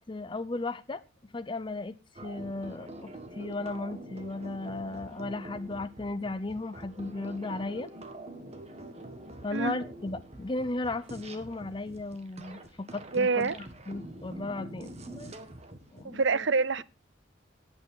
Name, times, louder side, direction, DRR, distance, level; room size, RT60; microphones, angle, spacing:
voice 1, 0.1-1.0 1.3-7.9 9.4-15.3 15.9-16.5, left 2 dB, 25° left, 0.6 m, -36 dB
sound 1, 2.2-16.0, right 1 dB, 35° right, 1.7 m, -45 dB
voice 2, 13.1-13.6 16.0-16.8, right 4 dB, 65° right, 0.7 m, -26 dB
17.5 x 9.0 x 3.8 m
head